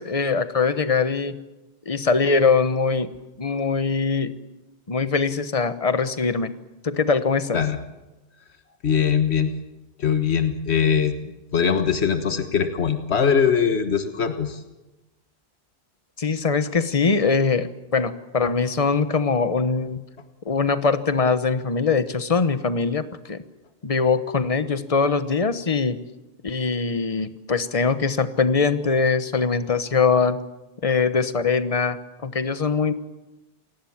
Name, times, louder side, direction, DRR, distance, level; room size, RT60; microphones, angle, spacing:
voice 1, 0.0-1.4 1.9-3.1 3.4-4.3 4.9-6.5 6.8-7.6 16.2-20.0 20.4-23.4 23.8-26.0 26.4-30.4 30.8-32.9, left 4 dB, 35° left, 11 dB, 1.2 m, -22 dB
voice 2, 8.8-9.5 10.0-14.6, left 7 dB, 90° left, 8 dB, 1.6 m, -21 dB
27.5 x 18.5 x 7.3 m, 1.1 s
omnidirectional pair, 1.1 m